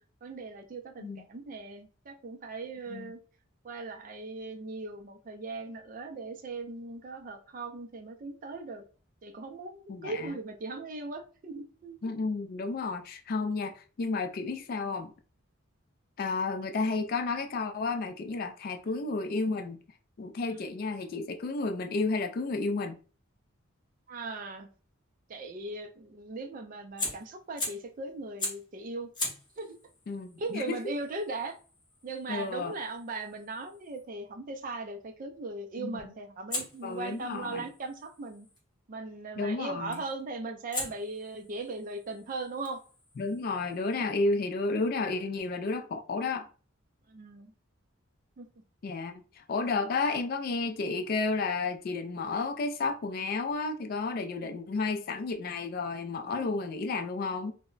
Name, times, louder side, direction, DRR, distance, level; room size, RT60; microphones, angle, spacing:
voice 1, 0.2-3.2 3.6-8.8 9.2-12.0 24.1-24.7 25.3-29.1 29.6-29.8 30.4-31.6 32.0-38.5 38.9-42.8 47.1-47.5 48.4-48.5 49.1-49.2 54.4-54.6, right 3 dB, 40° right, 0.4 m, -39 dB
voice 2, 9.9-10.3 12.0-15.1 16.2-19.8 20.2-23.0 30.1-30.8 32.3-32.7 35.8-36.0 36.8-37.7 39.4-40.0 43.2-46.5 48.8-57.5, left 3 dB, 45° left, 0.3 m, -32 dB
Fire, 27.0-27.9 28.4-28.7 29.1-34.1 36.5-38.6 39.9-40.2 40.7-44.2, left 2 dB, 20° left, 0.7 m, -41 dB
2.1 x 2.0 x 3.7 m
head